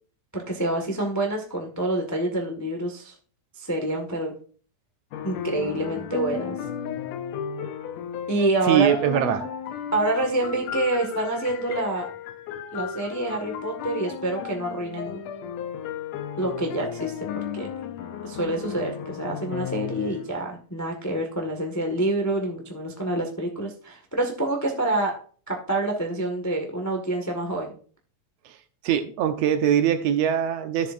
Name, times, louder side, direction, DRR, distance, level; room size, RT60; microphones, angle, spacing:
voice 1, 0.3-3.1 3.6-4.3 5.2-6.6 8.3-9.0 9.9-12.1 12.7-15.2 16.4-17.3 17.5-17.7 18.2-25.2 25.5-27.7, right 2 dB, 25° left, 0.3 m, -27 dB
sound 1, 5.1-20.3, left 8 dB, 75° left, 1.9 m, -34 dB
voice 2, 8.7-9.5 28.8-30.9, right 9 dB, 70° right, 1.7 m, -22 dB
13.0 x 7.2 x 2.5 m
omnidirectional pair, 3.3 m